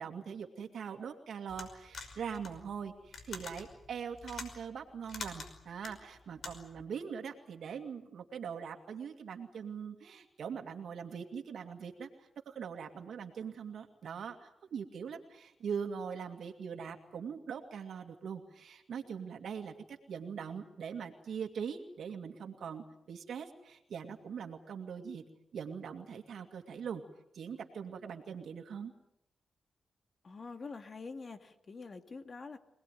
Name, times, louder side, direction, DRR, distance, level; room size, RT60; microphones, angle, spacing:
voice 1, 0.0-25.2 25.5-27.0 27.3-28.9, right 7 dB, 75° right, 4 dB, 2.3 m, -42 dB
sound 1, 1.5-6.8, left 4 dB, 65° left, 5.5 m, -46 dB
voice 2, 30.2-32.6, left 4 dB, 45° left, 7 dB, 2.4 m, -45 dB
25.5 x 19.5 x 9.3 m, 0.80 s
cardioid pair, 90°, 0 cm